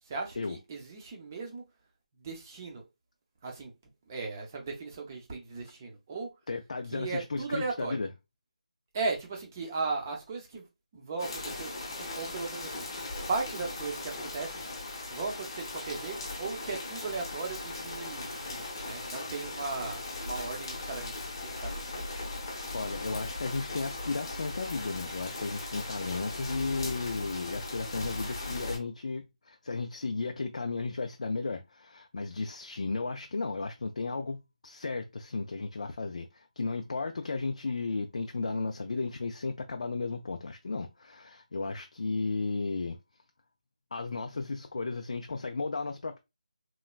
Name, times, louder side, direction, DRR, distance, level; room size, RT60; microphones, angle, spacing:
voice 1, 0.0-1.7 2.1-2.9 3.4-3.7 4.1-6.3 6.9-8.0 8.9-10.7 10.9-12.9 13.3-14.8 15.1-22.0, right 4 dB, 20° right, 0.6 m, -37 dB
voice 2, 6.5-8.1 22.7-43.0 43.9-46.2, left 3 dB, 60° left, 0.3 m, -34 dB
sound 1, 11.2-28.8, left 2 dB, 30° left, 0.7 m, -38 dB
3.1 x 2.1 x 2.3 m
figure-of-eight pair, 165°, 4 cm